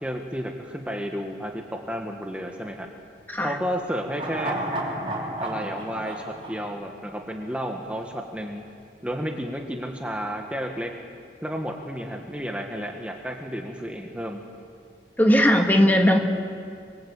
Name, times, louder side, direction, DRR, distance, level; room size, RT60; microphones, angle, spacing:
voice 1, 0.0-2.9 3.4-4.6 5.4-8.6 9.0-10.9 11.4-14.4, equal, 5° right, 2 dB, 1.6 m, -32 dB
sound 1, 4.1-7.5 7.8-7.9, right 1 dB, 30° right, 4.7 m, -32 dB
voice 2, 15.2-16.2, equal, 10° left, 3 dB, 1.8 m, -18 dB
26.0 x 24.0 x 8.4 m, 2.3 s
head